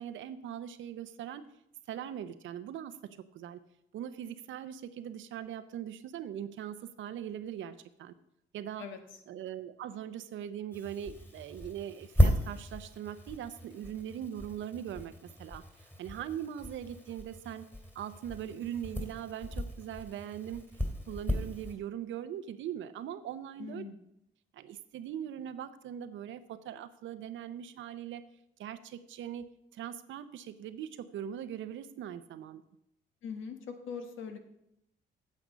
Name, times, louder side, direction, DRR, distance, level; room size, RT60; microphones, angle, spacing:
voice 1, 0.0-1.4 1.9-3.6 3.9-8.1 8.5-8.9 9.3-17.7 17.9-20.7 21.1-23.8 24.5-28.2 28.6-32.6, right 10 dB, 75° right, 12 dB, 0.7 m, -41 dB
sound 1, 10.7-21.7, equal, 10° left, 2.3 m, -34 dB
voice 2, 23.6-24.0 33.2-34.4, left 6 dB, 80° left, 7 dB, 1.4 m, -41 dB
8.5 x 7.8 x 5.1 m, 0.80 s
cardioid pair, 90°, 20 cm